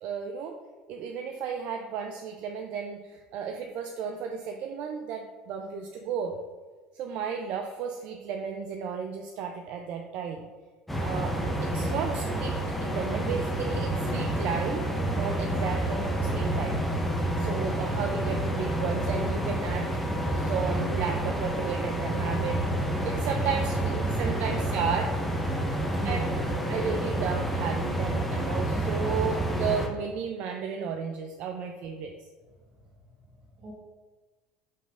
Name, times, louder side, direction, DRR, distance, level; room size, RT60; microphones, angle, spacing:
voice 1, 0.0-0.6 0.9-6.4 6.9-10.5 11.0-11.4 11.6-16.8 17.4-19.9 20.3-25.1 26.0-26.3 26.7-32.1, right 6 dB, 60° right, 4 dB, 0.3 m, -33 dB
sound 1, 10.9-29.9, right 1 dB, 5° left, 0.7 m, -29 dB
voice 2, 25.5-26.6 32.4-33.7, right 2 dB, 40° right, -2 dB, 1.4 m, -45 dB
5.4 x 3.0 x 2.5 m, 1.3 s
supercardioid pair, 95°, 3 cm